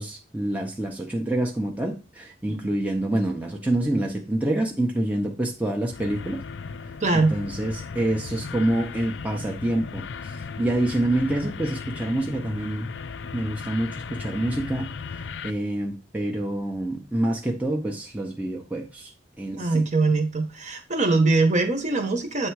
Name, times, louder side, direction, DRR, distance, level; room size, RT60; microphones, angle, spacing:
voice 1, 0.0-6.4 7.1-12.9 13.3-19.1 19.4-19.9, right 1 dB, 10° right, 0 dB, 0.7 m, -27 dB
sound 1, 5.9-15.5, left 5 dB, 70° left, 0.5 m, -36 dB
voice 2, 7.0-7.3 19.5-22.5, right 3 dB, 40° right, 5 dB, 1.1 m, -22 dB
8.3 x 3.4 x 4.7 m, 0.32 s
head